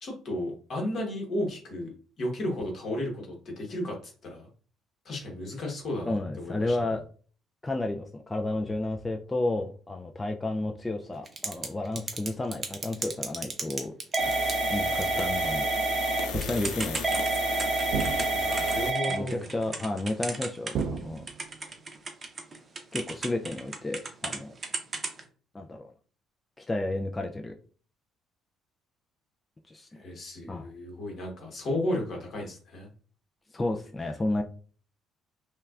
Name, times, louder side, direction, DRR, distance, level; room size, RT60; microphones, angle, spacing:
voice 1, 0.0-4.5 5.0-6.8 18.3-19.4 29.9-32.9, left 1 dB, 45° left, 0 dB, 1.2 m, -34 dB
voice 2, 6.1-7.0 7.6-13.9 14.6-15.7 16.3-17.1 19.1-21.3 22.9-24.5 25.5-25.9 26.6-27.5 29.7-30.0 30.5-30.7 33.5-34.4, left 2 dB, 15° left, 3 dB, 0.4 m, -32 dB
Typing / Telephone, 11.3-11.7 12.0-21.0 21.3-24.4 24.6-25.2, right 3 dB, 30° right, 0.7 m, -29 dB
sound 1, 14.2-19.0, left 5 dB, 90° left, 0.6 m, -35 dB
sound 2, 16.3-16.8 17.9-18.7 20.7-21.6, right 5 dB, 60° right, 0.4 m, -34 dB
5.5 x 2.3 x 2.4 m, 0.42 s
cardioid pair, 120°, 0 cm